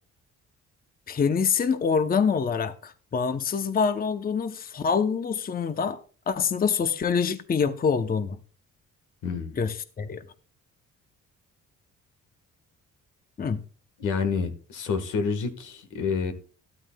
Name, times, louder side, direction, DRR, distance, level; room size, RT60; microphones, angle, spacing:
voice 1, 1.1-6.0 6.3-8.4 9.6-10.2 13.4-13.6, left 6 dB, 30° left, 0.7 m, -25 dB
voice 2, 9.2-9.6 14.0-16.3, left 5 dB, 85° left, 1.5 m, -28 dB
13.0 x 12.5 x 2.2 m
cardioid pair, 90°, 30 cm